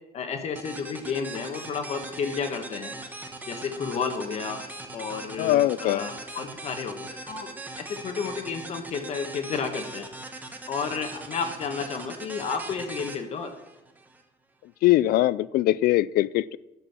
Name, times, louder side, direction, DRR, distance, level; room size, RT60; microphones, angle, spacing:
voice 1, 0.1-2.9 3.5-4.6 4.9-7.5 7.9-10.1 10.7-13.5, left 5 dB, 40° left, 6 dB, 1.2 m, -31 dB
sound 1, 0.6-14.2, right 2 dB, 10° right, 1.0 m, -40 dB
voice 2, 5.4-6.1 14.8-16.6, left 15 dB, 70° left, 20 dB, 0.4 m, -22 dB
12.0 x 6.1 x 7.2 m, 0.99 s
cardioid pair, 175°, 16 cm